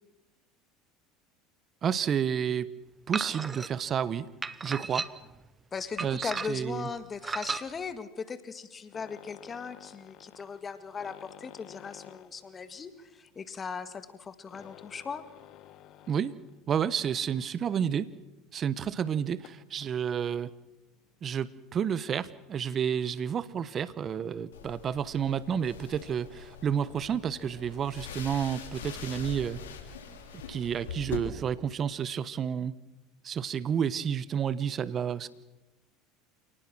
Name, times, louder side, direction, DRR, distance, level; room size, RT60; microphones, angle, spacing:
voice 1, 1.8-2.7 3.1-4.3 4.6-5.1 6.0-6.9 16.1-16.3 16.7-18.1 18.5-20.5 21.2-29.6 30.5-32.8 33.2-35.3, right 8 dB, 40° right, 17 dB, 1.0 m, -30 dB
sound 1, 3.1-3.7 4.4-5.4 6.0-6.7 7.2-7.6, right 4 dB, 20° right, 1.1 m, -34 dB
voice 2, 5.7-15.2, left 5 dB, 30° left, 12 dB, 1.9 m, -38 dB
sound 2, 8.9-16.7 17.0-17.3 17.8-17.9 18.2-18.3 19.3-20.0 21.2-21.4 21.8-22.2 23.0-23.1 23.3-23.4 23.6-23.7, left 12 dB, 55° left, 1.4 m, -52 dB
sound 3, 24.5-31.2, left 6 dB, 85° left, 3.8 m, -43 dB
28.5 x 19.0 x 6.2 m, 1.0 s
hypercardioid pair, 85°, 0 cm